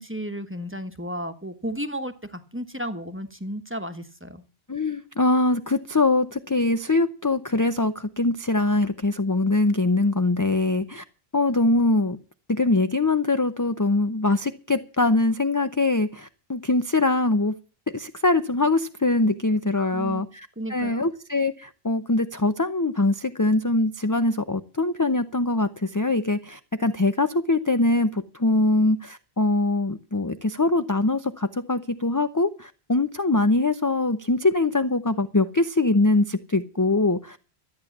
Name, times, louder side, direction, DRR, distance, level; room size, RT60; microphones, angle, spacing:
voice 1, 0.0-4.4 19.8-20.2 20.6-21.1, equal, 10° right, 1.2 m, -33 dB
voice 2, 4.7-11.0 11.3-12.2 12.5-17.5 17.9-37.4, left 2 dB, 20° left, 0.6 m, -23 dB
13.5 x 9.5 x 7.2 m
omnidirectional pair, 1.1 m